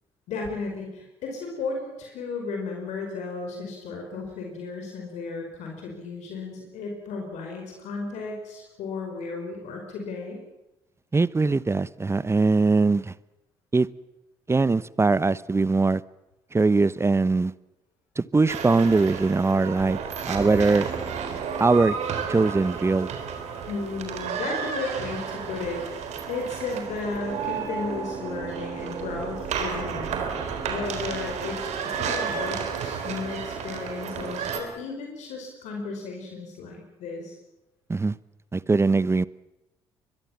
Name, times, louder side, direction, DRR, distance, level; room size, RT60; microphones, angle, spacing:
voice 1, 0.3-10.4 23.7-30.1 30.7-37.4, left 3 dB, 65° left, 1 dB, 5.2 m, -34 dB
voice 2, 11.1-13.1 13.7-13.9 14.5-16.0 16.5-17.5 18.2-20.0 20.3-20.9 21.6-22.0 22.3-23.1 37.9-38.1 38.5-39.3, right 3 dB, 20° right, 20 dB, 0.8 m, -21 dB
sound 1, 18.5-34.6, right 6 dB, 60° right, 3.9 m, -32 dB
23.0 x 22.5 x 7.3 m, 0.93 s
hypercardioid pair, 50°, 13 cm